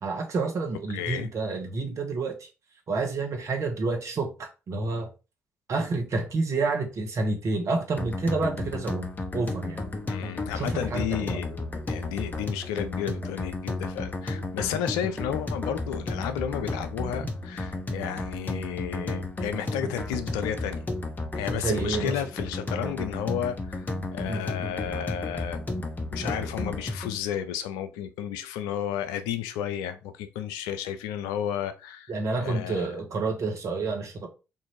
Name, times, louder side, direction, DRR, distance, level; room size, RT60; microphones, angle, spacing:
voice 1, 0.0-2.5 2.9-5.1 5.7-9.8 10.5-11.4 21.5-22.2 24.2-24.4 26.2-26.4 32.1-34.3, right 3 dB, 50° right, 1.0 m, -29 dB
voice 2, 0.9-1.3 10.1-20.8 21.3-25.6 26.1-32.1 32.4-32.9, left 9 dB, 75° left, 0.4 m, -32 dB
sound 1, 8.0-27.2, left 2 dB, 25° left, 0.7 m, -33 dB
3.6 x 2.6 x 3.0 m
hypercardioid pair, 45°, 6 cm